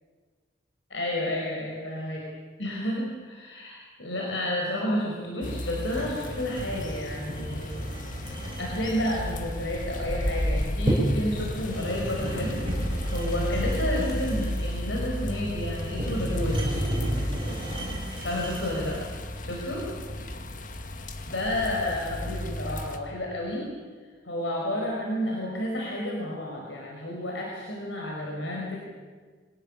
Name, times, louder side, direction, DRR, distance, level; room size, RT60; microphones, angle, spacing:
voice 1, 0.9-2.3 2.6-7.9 8.6-12.6 13.1-16.7 18.2-19.0 19.4-19.9 21.3-23.7 24.2-28.8, left 1 dB, 80° left, -2 dB, 4.9 m, -31 dB
sound 1, 5.4-23.0, left 1 dB, 45° left, 1.8 m, -33 dB
sound 2, 5.8-19.2, right 1 dB, 25° right, 8.0 m, -33 dB
24.0 x 18.5 x 8.8 m, 1.5 s
head